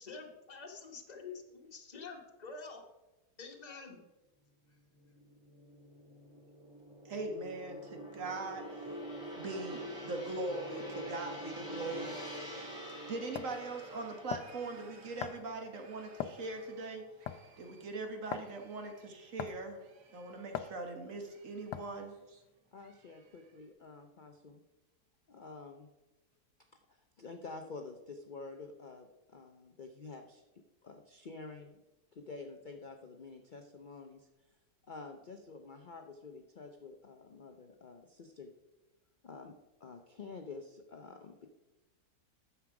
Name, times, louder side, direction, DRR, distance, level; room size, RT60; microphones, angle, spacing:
voice 1, 0.0-2.8 3.4-4.0, left 4 dB, 30° left, 2 dB, 1.2 m, -47 dB
Gong, 5.0-17.5 17.8-18.1, equal, ahead, 3.0 m, -46 dB
voice 2, 7.0-8.6 9.4-12.2 13.1-17.0 17.6-19.8 20.1-22.4, right 3 dB, 55° right, 4 dB, 1.7 m, -41 dB
sound 1, 11.8-16.9 17.2-18.0 18.3-19.3 19.6-20.8 21.2-22.2 22.7-23.7, right 5 dB, 80° right, 1.7 m, -60 dB
sound 2, 12.6-12.7 13.4-13.6 14.3-14.6 15.2-15.5 16.2-16.5 17.3-17.5 18.3-18.5 19.4-19.7 20.5-20.8 21.7-22.0, left 10 dB, 85° left, 1.2 m, -39 dB
voice 3, 22.7-24.6 25.3-25.9 26.9-30.4 30.8-31.7 32.1-34.3 34.9-38.5 39.2-39.5 39.8-41.5, left 3 dB, 65° left, 5 dB, 0.4 m, -49 dB
9.5 x 7.0 x 4.8 m, 1.1 s
omnidirectional pair, 1.7 m